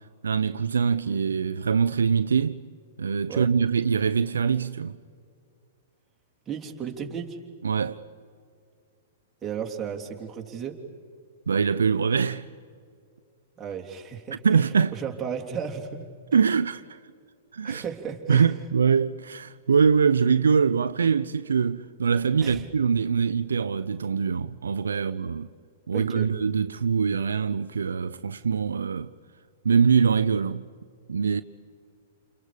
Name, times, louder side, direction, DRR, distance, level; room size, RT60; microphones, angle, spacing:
voice 1, 0.2-2.6 3.0-5.0 7.6-8.0 11.5-12.5 14.4-14.9 16.3-17.0 17.5-17.8 18.3-25.5 25.9-29.1 29.6-30.7 31.1-31.4, right 6 dB, 75° right, 0.6 m, -23 dB
voice 2, 6.5-7.4 9.4-10.8 13.6-16.4 17.6-18.6 22.4-22.7 25.9-26.3, right 7 dB, 20° right, 3.2 m, -35 dB
29.5 x 29.5 x 5.1 m
figure-of-eight pair, 110°, 0 cm